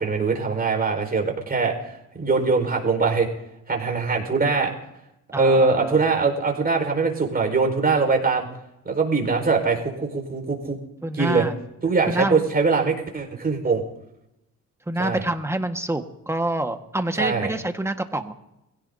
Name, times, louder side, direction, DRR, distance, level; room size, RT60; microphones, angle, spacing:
voice 1, 0.0-1.7 2.1-3.3 3.7-4.7 5.3-8.5 8.8-10.8 11.2-11.5 11.8-13.8 15.0-15.2 17.2-17.5, right 4 dB, 30° right, 3 dB, 4.7 m, -22 dB
voice 2, 5.3-6.0 11.0-11.5 12.1-12.4 14.9-18.3, right 1 dB, 10° right, 6 dB, 1.5 m, -27 dB
23.5 x 16.5 x 2.8 m, 0.88 s
cardioid pair, 90°, 30 cm